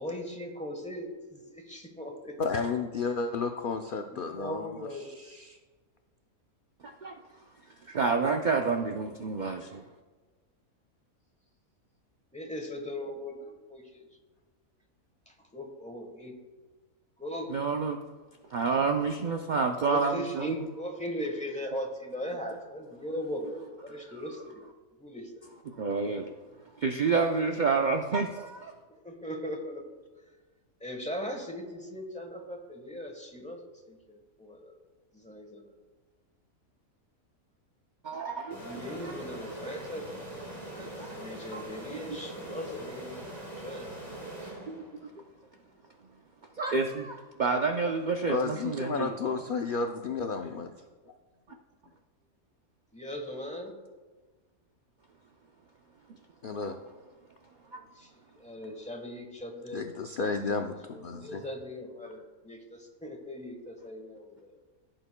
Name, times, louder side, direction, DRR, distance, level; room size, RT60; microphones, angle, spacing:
voice 1, 0.0-2.4 2.6-2.7 4.1-5.1 12.3-14.1 15.3-16.3 17.2-17.6 19.9-23.5 23.8-24.6 25.0-25.4 29.0-29.8 30.8-33.6 33.8-34.7 35.1-35.7 38.6-40.2 40.7-43.9 44.4-44.6 52.9-53.7 57.9-59.9 60.1-60.6 60.9-64.5, equal, 5° left, 2 dB, 1.0 m, -39 dB
voice 2, 2.4-5.6 48.3-50.7 51.5-51.6 56.4-56.8 59.7-61.4, left 4 dB, 65° left, 5 dB, 0.5 m, -32 dB
voice 3, 7.9-9.8 17.5-18.0 18.5-20.5 25.7-26.3 26.8-28.7 38.0-39.2 41.0-41.2 41.5-41.6 41.9-42.0 44.7-44.8 46.6-49.4 57.7-57.8, right 4 dB, 75° right, 3 dB, 0.4 m, -29 dB
sound 1, 38.5-45.2, right 1 dB, 30° right, 2.0 m, -42 dB
15.5 x 7.8 x 2.2 m, 1.4 s
omnidirectional pair, 1.5 m